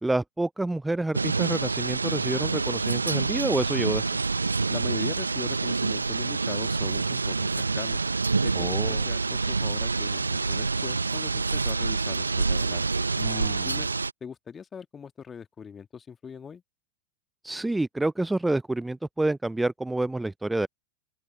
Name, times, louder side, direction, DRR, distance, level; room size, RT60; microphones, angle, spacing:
voice 1, 0.0-4.0 8.6-9.1 13.2-13.8 17.4-20.7, right 2 dB, 5° right, 0.5 m, -28 dB
sound 1, 1.1-14.1, right 4 dB, 80° right, 0.8 m, -27 dB
voice 2, 4.7-8.0 8.3-13.1 13.6-13.9 14.2-16.6, left 6 dB, 20° left, 1.7 m, -41 dB
open air
figure-of-eight pair, 90°, 0 cm